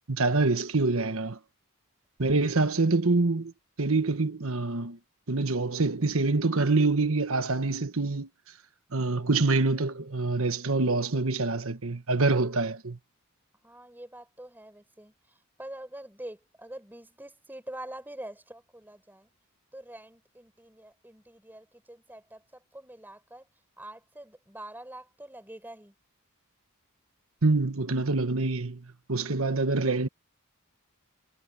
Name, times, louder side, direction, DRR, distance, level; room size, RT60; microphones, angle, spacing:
voice 1, 0.1-1.4 2.2-3.5 3.8-5.0 5.3-8.3 8.9-13.0 27.4-30.1, right 3 dB, 65° right, 1.3 m, -26 dB
voice 2, 13.6-15.1 15.6-19.3 19.7-22.4 22.7-23.5 23.8-25.9, right 1 dB, 10° right, 4.4 m, -45 dB
head